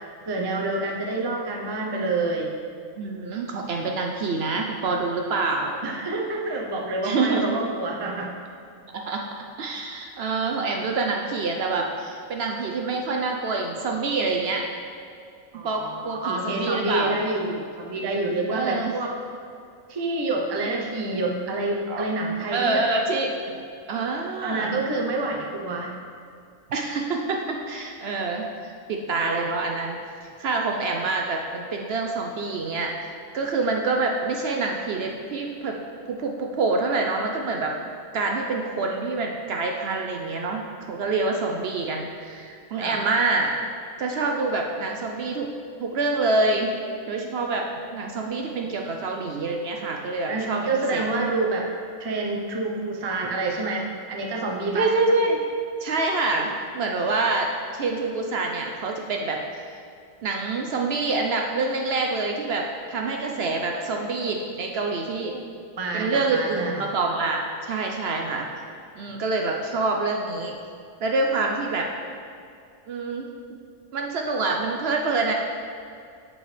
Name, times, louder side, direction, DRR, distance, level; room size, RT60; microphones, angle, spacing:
voice 1, 0.3-2.5 5.8-8.3 15.5-19.1 19.9-22.8 24.4-25.9 42.8-43.0 50.3-51.7 52.0-54.9 65.2-66.9 69.1-69.2, right 2 dB, 30° right, 0 dB, 0.4 m, -28 dB
voice 2, 3.0-5.8 7.0-7.4 8.9-9.2 9.6-14.6 15.6-17.1 18.5-18.9 21.9-22.0 22.5-23.5 23.9-24.8 26.7-32.9 33.3-35.7 36.1-37.7 38.1-43.5 44.0-45.5 45.8-46.7 47.1-51.1 54.7-55.4 55.8-59.8 60.2-65.3 65.9-68.5 68.9-70.6 71.0-71.9 72.9-73.3 73.9-75.3, right 3 dB, 60° right, 1 dB, 0.7 m, -26 dB
8.4 x 5.2 x 3.2 m, 2.4 s
omnidirectional pair, 1.3 m